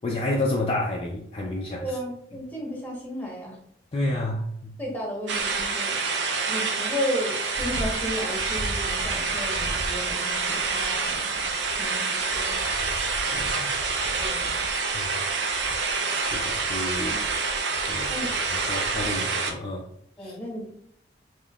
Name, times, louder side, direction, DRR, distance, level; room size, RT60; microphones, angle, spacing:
voice 1, 0.0-1.8 3.9-4.7 13.3-13.7 14.9-15.1 16.2-17.2 17.9-18.1 18.7-19.9 20.2-20.3, left 1 dB, 30° left, 0.4 m, -29 dB
voice 2, 1.8-3.6 4.8-6.0 6.4-12.8 14.2-14.6 17.1-17.2 18.1-18.4 20.2-20.7, equal, 10° left, 1.0 m, -34 dB
sound 1, 5.3-19.5, right 4 dB, 80° right, 0.6 m, -27 dB
5.1 x 2.8 x 2.3 m
head